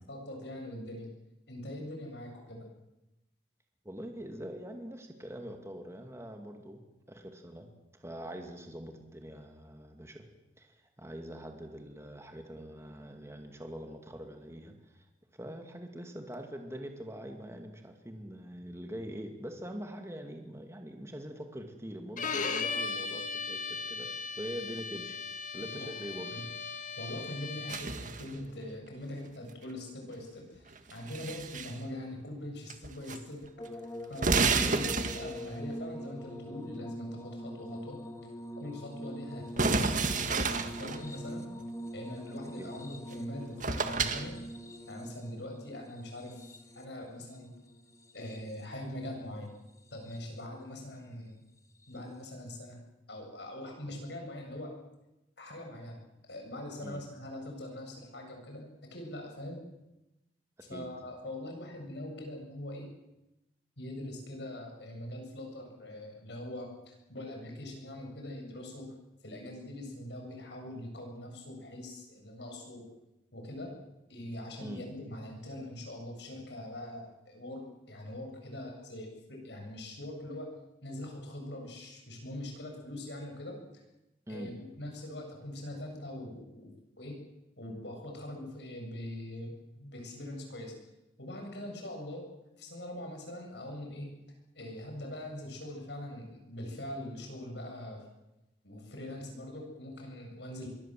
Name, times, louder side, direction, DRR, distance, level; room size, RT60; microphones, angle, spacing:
voice 1, 0.1-1.1 1.5-2.7 25.7-25.9 26.3-26.5 27.0-33.5 34.1-34.9 35.1-38.0 38.6-41.5 41.9-44.4 44.9-47.5 48.1-49.5 49.9-51.4 51.9-52.8 53.1-54.8 55.4-58.6 58.9-59.6 60.7-62.9 63.8-68.9 69.2-72.8 73.3-73.7 74.1-80.5 80.8-83.6 84.3-87.2 87.6-90.8 91.2-92.3 92.6-94.1 94.5-98.1 98.6-100.7, left 1 dB, 70° left, 2 dB, 7.6 m, -42 dB
voice 2, 3.8-6.8 7.1-7.7 7.9-10.3 10.6-15.1 15.3-25.2 25.5-26.3 34.5-34.8 42.6-42.7 56.8-57.0 60.6-60.9 74.6-74.8 84.3-84.5, equal, 15° right, 4 dB, 2.3 m, -43 dB
Bowed string instrument, 22.2-28.0, left 4 dB, 45° left, 2.0 m, -37 dB
sound 1, 27.7-28.3 30.7-31.8 32.7-33.2 33.4-33.5 34.1-35.5 39.6-41.0 43.1-43.2 43.6-44.3, right 4 dB, 45° right, 2.0 m, -30 dB
sound 2, 33.6-48.8 49.7-50.4 51.8-52.0, equal, 15° left, 2.1 m, -44 dB
25.0 x 22.0 x 7.7 m, 0.95 s
head